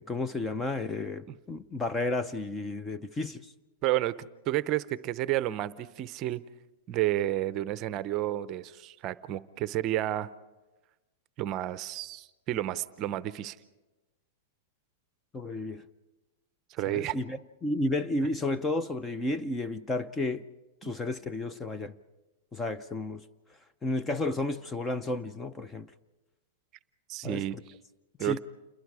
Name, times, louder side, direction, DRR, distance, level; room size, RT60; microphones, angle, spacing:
voice 1, 0.0-3.5 15.3-15.8 16.9-20.4 20.8-21.9 22.5-23.2 23.8-25.9 27.2-27.5 28.2-28.4, left 2 dB, 15° left, 0.6 m, -32 dB
voice 2, 3.8-4.1 4.5-6.4 6.9-10.3 11.4-13.6 16.7-17.1 20.8-20.9 27.1-27.6 28.2-28.4, right 14 dB, 35° right, 0.7 m, -31 dB
28.5 x 21.5 x 4.9 m
supercardioid pair, 155°, 0 cm